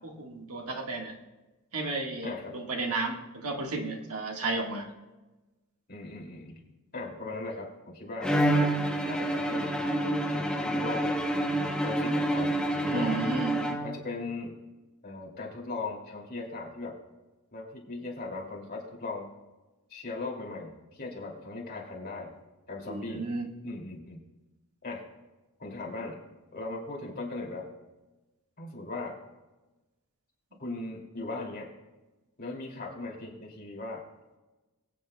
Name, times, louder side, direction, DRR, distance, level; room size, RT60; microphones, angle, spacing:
voice 1, 0.0-1.1 1.7-4.9 12.9-13.5 22.9-23.5, right 3 dB, 85° right, 2 dB, 1.6 m, -33 dB
voice 2, 2.2-2.5 5.9-6.6 6.9-8.4 9.1-9.7 10.0-11.2 11.8-13.2 13.8-14.5 15.0-17.0 17.5-19.3 19.9-22.3 22.7-23.3 23.6-24.2 24.8-25.0 25.6-26.2 26.5-27.6 28.6-29.2 30.6-31.7 32.4-34.0, left 3 dB, 45° left, -2 dB, 2.6 m, -38 dB
Bowed string instrument, 8.2-14.2, right 1 dB, 5° left, 0.8 m, -28 dB
22.5 x 8.6 x 2.2 m, 1.1 s
head